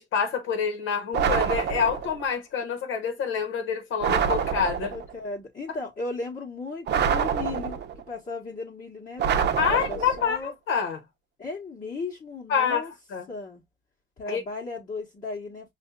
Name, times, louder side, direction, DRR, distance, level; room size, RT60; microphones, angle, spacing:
voice 1, 0.0-4.9 9.6-11.0 12.5-13.2 14.3-14.4, left 6 dB, 80° left, 1.2 m, -27 dB
sound 1, 1.1-2.2 4.0-5.1 6.9-8.0 9.2-10.3, right 7 dB, 60° right, 0.7 m, -26 dB
voice 2, 4.9-10.5 11.4-12.9 13.3-13.6 14.2-15.7, left 3 dB, 40° left, 1.2 m, -36 dB
5.5 x 2.5 x 2.3 m
cardioid pair, 90°, 20 cm